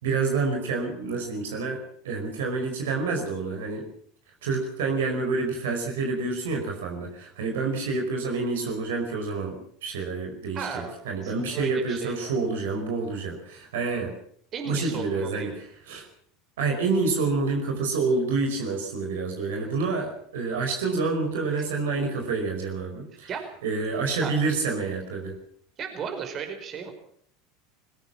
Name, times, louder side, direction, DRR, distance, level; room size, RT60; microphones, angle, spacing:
voice 1, 0.0-3.9 4.4-14.1 14.6-16.1 16.6-23.3 23.6-25.4, right 4 dB, 75° right, 3 dB, 4.9 m, -28 dB
voice 2, 10.5-10.9 11.2-12.3 14.5-15.5 21.6-21.7 23.3-23.5 24.2-24.3 25.8-26.9, right 6 dB, 40° right, 6 dB, 5.1 m, -35 dB
21.5 x 17.0 x 7.5 m, 0.62 s
hypercardioid pair, 80°, 0 cm